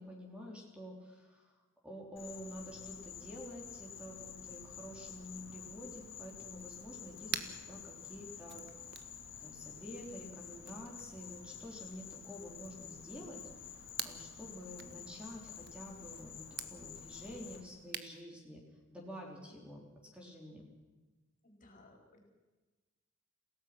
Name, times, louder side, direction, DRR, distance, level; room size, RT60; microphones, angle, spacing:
voice 1, 0.0-1.5 1.8-8.6 9.4-13.4 13.7-16.4 16.7-18.6 18.9-19.9 20.1-20.7, equal, 5° right, -1 dB, 3.7 m, -49 dB
Insect, 2.2-17.6, left 8 dB, 65° left, 2.7 m, -50 dB
sound 1, 6.2-18.2, right 9 dB, 55° right, 1.4 m, -49 dB
voice 2, 21.4-22.2, left 2 dB, 40° left, 2 dB, 4.6 m, -60 dB
28.5 x 17.5 x 6.1 m, 1.2 s
head